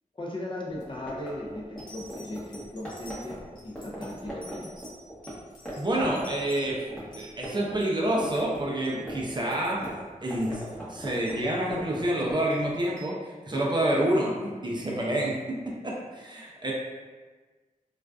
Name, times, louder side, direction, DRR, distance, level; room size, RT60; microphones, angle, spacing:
voice 1, 0.1-4.7, left 1 dB, 35° left, -3 dB, 0.4 m, -37 dB
sound 1, 0.7-5.3 5.6-5.7 6.0-7.8 8.0-12.8, right 1 dB, 5° left, 0.7 m, -40 dB
sound 2, 1.2-1.3 1.8-7.9 8.2-8.6 8.8-9.0 9.2-9.4 9.6-9.8 10.3-11.9 12.5-13.1 14.0-14.1, equal, 85° left, 0.7 m, -51 dB
voice 2, 5.8-6.9 7.2-9.9 10.2-10.6 10.9-13.2 13.4-16.7, right 1 dB, 35° right, -3 dB, 0.4 m, -28 dB
2.4 x 2.3 x 2.3 m, 1.3 s
wide cardioid pair, 95°, 14 cm